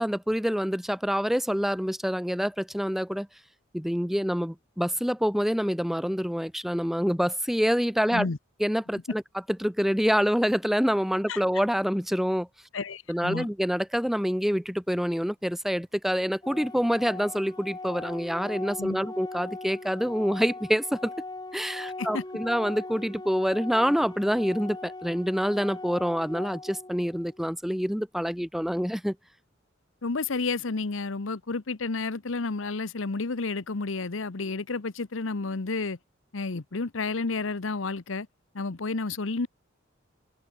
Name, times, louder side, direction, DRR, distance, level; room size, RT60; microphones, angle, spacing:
voice 1, 0.0-3.3 3.7-8.3 8.6-9.2 9.6-12.5 13.1-21.1 21.5-29.1, equal, ahead, 1.6 m, -26 dB
voice 2, 12.7-13.5 18.8-19.1 22.0-22.2 30.0-36.0 36.3-38.3 38.5-39.5, left 3 dB, 75° left, 1.0 m, -31 dB
Organ, 16.4-27.4, left 2 dB, 20° left, 4.2 m, -40 dB
head